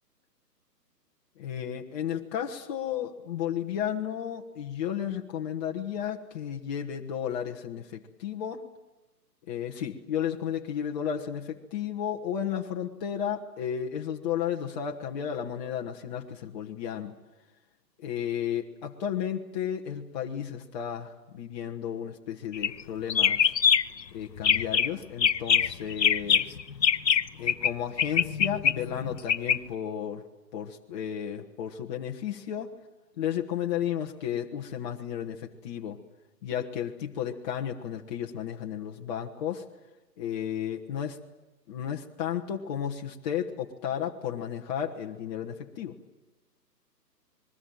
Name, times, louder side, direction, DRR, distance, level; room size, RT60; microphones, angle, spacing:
voice 1, 1.4-8.6 9.5-17.1 18.0-23.5 24.1-26.6 27.4-30.2 30.5-32.7 33.2-36.0 36.4-39.6 40.2-41.2 41.7-46.0, left 9 dB, 25° left, 1 dB, 1.2 m, -33 dB
sound 1, 22.5-22.8 23.1-24.0 24.4-24.9 25.2-27.7 28.0-29.6, left 7 dB, 80° left, 0.9 m, -23 dB
28.0 x 21.0 x 9.0 m, 1.1 s
figure-of-eight pair, 135°, 49 cm